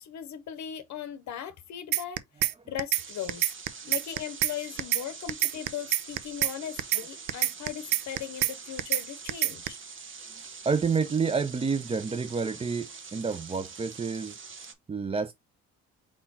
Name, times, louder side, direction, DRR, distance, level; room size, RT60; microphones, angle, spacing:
voice 1, 0.0-3.5 3.9-9.8, left 9 dB, 65° left, 0.7 m, -38 dB
sound 1, 1.9-2.5 2.8-3.0 3.3-4.5 4.8-5.0 5.3-6.5 6.8-7.0 7.3-8.5 8.8-9.0 9.3-9.7, right 14 dB, 85° right, 0.6 m, -25 dB
sound 2, 2.9-14.7, right 5 dB, 40° right, 1.2 m, -45 dB
voice 2, 10.3-14.4 14.9-15.3, right 5 dB, 20° right, 0.4 m, -29 dB
4.5 x 4.3 x 2.7 m
cardioid pair, 90°, 30 cm